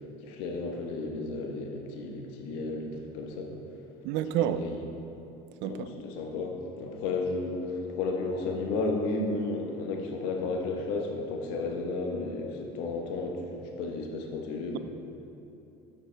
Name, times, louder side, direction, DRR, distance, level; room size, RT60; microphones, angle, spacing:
voice 1, 0.2-2.9 3.1-3.6 4.4-4.8 5.6-14.8, left 3 dB, 80° left, 2 dB, 1.1 m, -33 dB
voice 2, 4.0-4.7 5.6-6.0, right 11 dB, 70° right, 12 dB, 0.4 m, -29 dB
8.4 x 7.5 x 3.4 m, 2.8 s
supercardioid pair, 90°, 19 cm